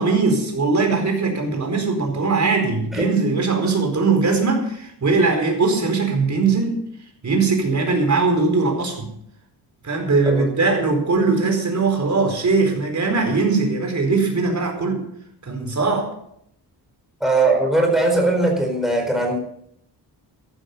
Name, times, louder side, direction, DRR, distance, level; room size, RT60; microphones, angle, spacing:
voice 1, 0.0-6.8 7.2-9.1 9.8-15.0 15.4-16.1, right 4 dB, 45° right, 3 dB, 4.5 m, -20 dB
voice 2, 17.2-19.4, right 2 dB, ahead, 1 dB, 4.5 m, -19 dB
14.5 x 12.0 x 5.4 m, 0.71 s
wide cardioid pair, 115°, 40 cm